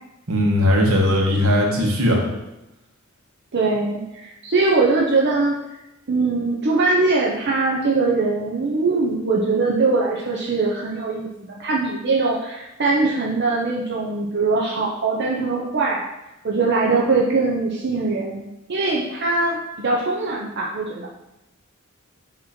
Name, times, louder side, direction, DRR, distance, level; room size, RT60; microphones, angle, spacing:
voice 1, 0.3-2.2, left 1 dB, 80° right, -1 dB, 1.4 m, -18 dB
voice 2, 3.5-5.5 6.1-16.1 16.4-18.4 18.7-19.6 19.8-21.1, right 3 dB, 50° right, -3 dB, 0.7 m, -21 dB
7.5 x 3.0 x 4.3 m, 0.92 s
head